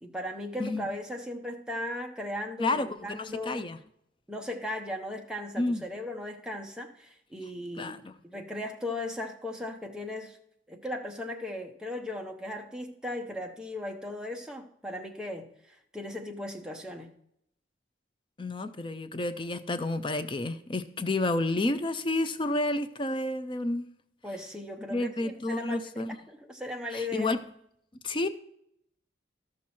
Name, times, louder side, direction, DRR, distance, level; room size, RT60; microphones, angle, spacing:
voice 1, 0.0-3.6 4.3-10.4 10.7-17.1 24.2-27.3, left 1 dB, 5° right, 2 dB, 0.9 m, -37 dB
voice 2, 2.6-3.8 5.6-5.8 7.8-8.1 18.4-23.9 24.9-26.2 26.9-27.4 28.0-28.3, left 2 dB, 25° left, 10 dB, 0.4 m, -30 dB
13.0 x 6.1 x 4.3 m, 0.74 s
head